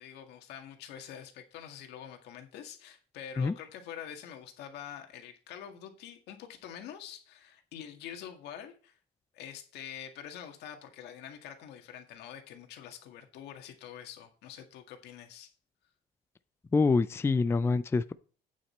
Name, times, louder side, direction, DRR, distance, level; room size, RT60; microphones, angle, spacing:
voice 1, 0.0-8.9 9.3-15.5, left 9 dB, 80° left, 5 dB, 1.9 m, -46 dB
voice 2, 16.7-18.1, left 4 dB, 15° left, 14 dB, 0.4 m, -26 dB
8.8 x 7.1 x 4.4 m, 0.41 s
cardioid pair, 110°, 17 cm